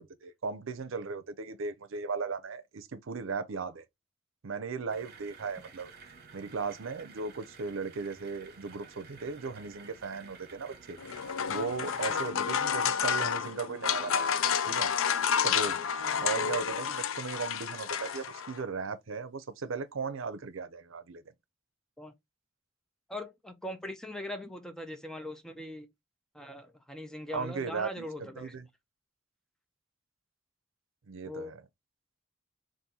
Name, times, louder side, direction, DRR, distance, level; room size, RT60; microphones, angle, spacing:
voice 1, 0.0-3.8 4.4-5.9 6.3-11.0 11.5-14.3 14.6-14.9 15.4-15.8 16.2-21.2 27.3-28.7 31.1-31.6, right 4 dB, 70° right, 0.6 m, -37 dB
sound 1, 4.9-12.3, right 5 dB, 50° right, 1.0 m, -53 dB
sound 2, 11.0-18.6, left 7 dB, 75° left, 0.4 m, -30 dB
voice 2, 12.1-12.5 16.0-16.3 22.0-22.1 23.1-25.9 26.3-28.6 31.2-31.6, left 1 dB, 5° left, 0.6 m, -41 dB
4.2 x 2.6 x 3.8 m
head